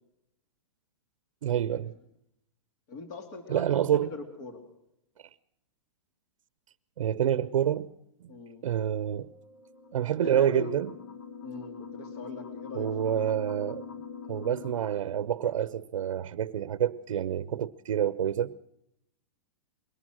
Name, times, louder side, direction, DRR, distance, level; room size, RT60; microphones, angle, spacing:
voice 1, 1.4-1.9 3.5-4.1 5.2-5.3 7.0-7.9 8.2-8.3 8.6-9.3 9.9-10.9 12.8-13.9 14.3-18.6, right 10 dB, 85° right, 0.7 m, -28 dB
voice 2, 2.9-4.6 8.3-8.6 10.2-10.7 11.4-13.4 13.9-14.0, left 3 dB, 35° left, 2.7 m, -41 dB
Keyboard (musical), 9.1-11.8, right 3 dB, 70° left, 7.1 m, -61 dB
sound 1, 9.5-14.8, left 6 dB, 50° left, 1.5 m, -43 dB
22.5 x 18.5 x 6.2 m
hypercardioid pair, 170°, 16 cm